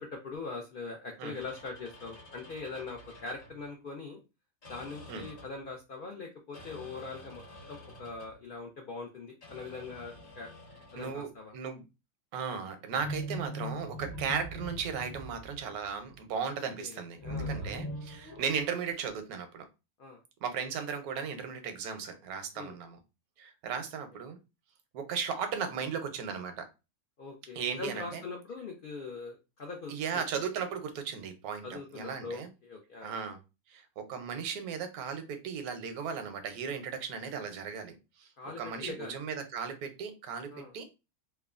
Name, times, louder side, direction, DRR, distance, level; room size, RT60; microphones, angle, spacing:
voice 1, 0.0-4.2 4.7-7.4 7.7-10.5 10.9-11.6 16.8-17.7 18.3-18.4 20.0-20.2 22.6-22.7 27.2-29.9 30.3-30.4 31.6-33.2 38.4-39.2 40.5-40.7, left 4 dB, 85° left, 0.4 m, -42 dB
sound 1, 1.3-3.6 4.6-5.7 6.5-8.4 9.4-11.3 12.9-16.1 17.2-18.7, equal, 50° left, 1.2 m, -43 dB
voice 2, 11.0-11.8 12.3-19.7 20.4-23.0 23.4-24.4 24.9-26.7 27.5-28.2 29.9-32.5 33.0-33.4 33.7-38.3 38.6-40.9, right 6 dB, 80° right, 1.1 m, -36 dB
3.0 x 2.2 x 2.3 m
omnidirectional pair, 1.6 m